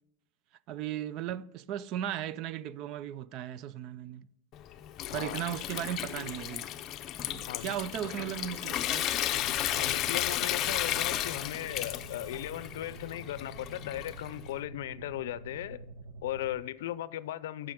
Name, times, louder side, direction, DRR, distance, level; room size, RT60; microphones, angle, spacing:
voice 1, 0.7-4.3 5.1-6.7 7.2-9.1, right 11 dB, 45° right, 0.4 m, -36 dB
Water tap faucet / Sink (filling or washing) / Trickle dribble, 4.5-14.5, left 12 dB, 35° left, 0.6 m, -34 dB
voice 2, 5.1-5.4 7.5-7.7 9.8-15.9 16.2-17.7, left 13 dB, 85° left, 0.5 m, -37 dB
sound 1, 9.3-16.6, right 4 dB, 85° right, 1.0 m, -48 dB
14.0 x 6.0 x 3.6 m
supercardioid pair, 145°, 0 cm